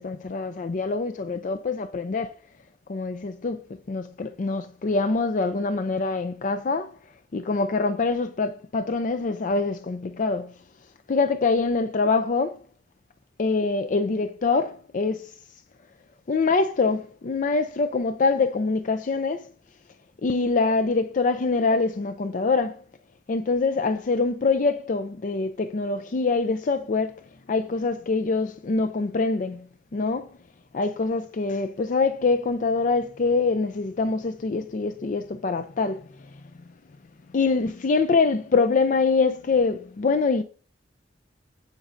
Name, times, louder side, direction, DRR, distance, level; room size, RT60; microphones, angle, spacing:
voice 1, 0.0-2.3 2.9-3.6 3.9-7.0 7.3-10.5 11.1-12.6 13.4-15.3 16.3-19.5 20.2-22.8 23.3-27.2 27.5-29.7 29.9-30.3 30.7-36.1 37.3-40.4, left 4 dB, 45° left, 0.4 m, -24 dB
15.0 x 5.2 x 2.6 m
head